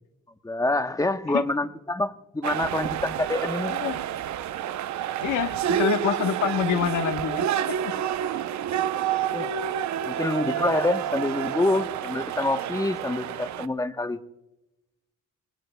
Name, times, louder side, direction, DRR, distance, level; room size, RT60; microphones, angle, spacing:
voice 1, 0.4-3.7 7.3-7.4 9.3-9.5 10.1-14.2, left 2 dB, 10° left, 8 dB, 1.1 m, -26 dB
sound 1, 2.4-13.7, right 10 dB, 65° right, 0.8 m, -29 dB
voice 2, 3.7-4.0 5.2-7.9, left 9 dB, 85° left, 8 dB, 1.2 m, -27 dB
28.5 x 20.0 x 2.3 m, 0.95 s
cardioid pair, 90°, 30 cm